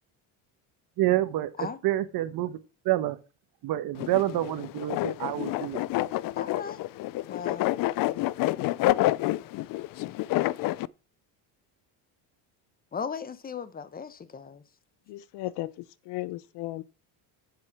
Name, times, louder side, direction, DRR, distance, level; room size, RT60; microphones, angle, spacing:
voice 1, 1.0-2.6 2.8-3.2 3.6-5.8, right 15 dB, 60° right, 1.2 m, -28 dB
sound 1, 4.0-10.9, left 17 dB, 55° left, 0.5 m, -28 dB
voice 2, 6.3-6.8 7.3-7.7 12.9-14.6, left 6 dB, 20° left, 1.0 m, -37 dB
voice 3, 15.1-16.8, left 17 dB, 75° left, 0.9 m, -36 dB
7.7 x 7.5 x 6.0 m
cardioid pair, 125°, 41 cm